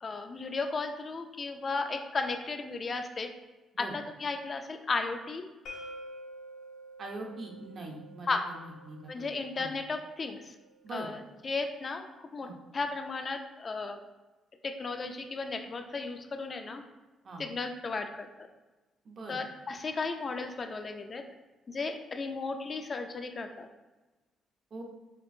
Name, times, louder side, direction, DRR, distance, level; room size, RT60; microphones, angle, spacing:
voice 1, 0.0-3.3 3.8-5.4 8.3-8.4 9.1-10.4 10.9-11.2 11.4-14.0 14.6-16.8 17.4-18.5 19.3-21.2 21.7-23.7, left 3 dB, 40° left, 5 dB, 0.4 m, -35 dB
sound 1, 5.7-11.5, equal, 75° left, 0.7 m, -49 dB
voice 2, 7.0-9.7 10.8-11.1 12.4-12.5 17.2-17.4 19.0-19.4 24.7-24.8, right 2 dB, 50° right, 1 dB, 0.7 m, -43 dB
4.3 x 2.5 x 2.6 m, 1.2 s
cardioid pair, 90°, 0 cm